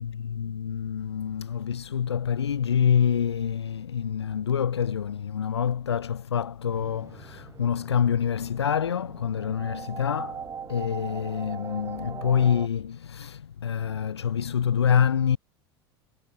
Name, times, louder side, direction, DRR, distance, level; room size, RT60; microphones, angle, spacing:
voice 1, 0.0-15.4, left 8 dB, 85° left, 0.6 m, -26 dB
sound 1, 6.7-12.7, right 7 dB, 20° right, 0.4 m, -41 dB
hypercardioid pair, 80°, 13 cm